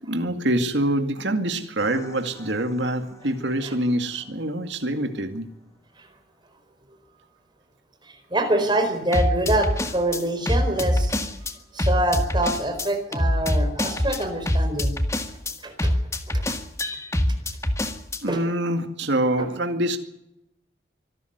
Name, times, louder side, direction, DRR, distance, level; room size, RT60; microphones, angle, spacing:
voice 1, 0.1-5.5 18.2-20.0, right 1 dB, 65° right, 6 dB, 2.2 m, -25 dB
sound 1, 1.8-2.1 9.1-11.5 11.8-18.2, left 1 dB, 15° left, 1.5 m, -24 dB
voice 2, 8.0-11.3 11.7-14.9 15.6-16.0 16.3-16.4 18.3-18.4, right 1 dB, 25° right, 6 dB, 4.4 m, -25 dB
24.5 x 12.5 x 9.3 m, 0.84 s
head